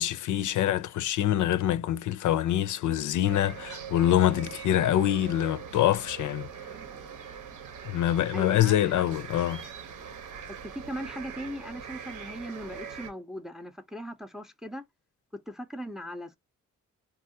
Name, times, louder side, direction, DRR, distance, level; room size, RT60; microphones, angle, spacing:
voice 1, 0.0-6.5 7.9-9.6, left 12 dB, 75° left, 0.5 m, -25 dB
sound 1, 3.3-13.1, right 7 dB, 80° right, 1.0 m, -42 dB
voice 2, 8.3-9.0 10.5-14.8 15.5-16.4, equal, ahead, 0.4 m, -39 dB
3.6 x 2.3 x 2.6 m
wide cardioid pair, 155°, 30 cm